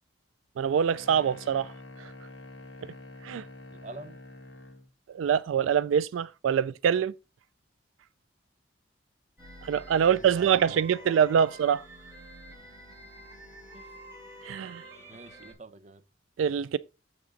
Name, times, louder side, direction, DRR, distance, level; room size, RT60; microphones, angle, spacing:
voice 1, 0.6-1.7 2.0-2.1 3.2-3.4 5.1-7.1 9.6-11.8 14.4-14.8 16.4-16.8, right 8 dB, 90° right, 0.3 m, -25 dB
sound 1, 0.9-4.9, left 2 dB, 70° left, 1.9 m, -46 dB
voice 2, 3.7-4.2 10.1-11.1 11.4-11.5 13.7-13.9 15.1-16.0, right 3 dB, 35° right, 0.5 m, -46 dB
sound 2, 9.4-15.5, right 1 dB, 10° right, 5.3 m, -48 dB
7.4 x 5.9 x 3.9 m
head